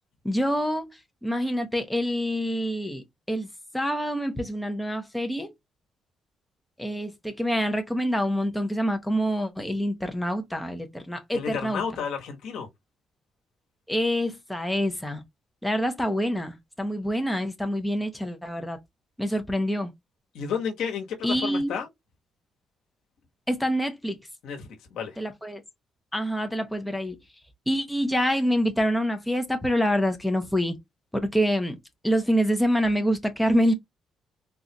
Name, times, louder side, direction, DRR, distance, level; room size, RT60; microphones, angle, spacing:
voice 1, 0.2-0.9 1.2-3.5 3.7-5.5 6.8-11.8 13.9-15.2 15.6-18.8 19.2-19.9 21.2-21.7 23.5-24.2 25.2-25.6 26.1-27.2 27.7-30.7 31.3-31.8 32.0-33.7, equal, 5° left, 0.8 m, -26 dB
voice 2, 11.3-12.7 20.3-21.9 24.4-25.2, left 6 dB, 80° left, 1.1 m, -32 dB
3.9 x 2.4 x 2.8 m
cardioid pair, 90°, 0 cm